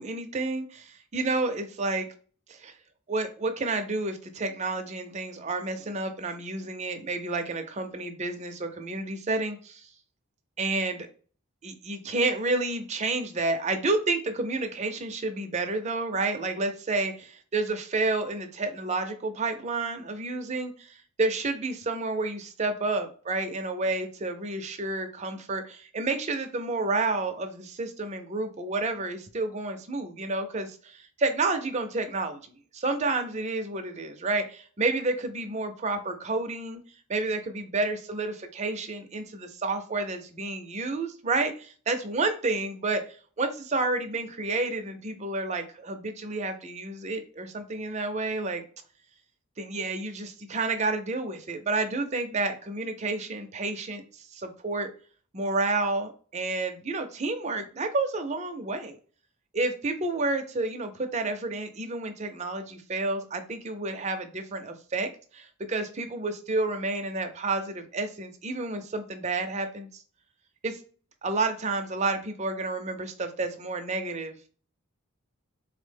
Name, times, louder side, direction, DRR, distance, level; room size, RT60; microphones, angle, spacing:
voice 1, 0.0-2.1 2.5-2.7 3.1-9.9 10.6-11.1 11.6-32.4 32.7-36.8 37.1-43.0 43.4-48.6 49.6-54.9 55.3-59.0 59.5-70.0 70.6-70.8 71.2-74.5, right 3 dB, 30° right, 6 dB, 0.5 m, -30 dB
3.9 x 2.0 x 3.3 m, 0.42 s
head